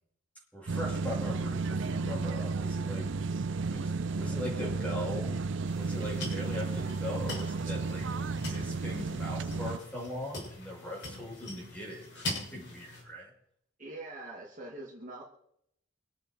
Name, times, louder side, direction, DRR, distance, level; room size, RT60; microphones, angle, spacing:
voice 1, 0.5-3.1 3.6-5.4 5.7-8.1 8.3-13.3, left 1 dB, 5° left, -4 dB, 6.7 m, -40 dB
sound 1, 0.7-9.8, right 4 dB, 60° right, 0.5 m, -33 dB
sound 2, 5.6-13.0, left 1 dB, 55° left, 6.8 m, -42 dB
voice 2, 13.8-15.2, right 2 dB, 40° right, -2 dB, 2.4 m, -43 dB
25.5 x 8.9 x 4.7 m, 0.72 s
head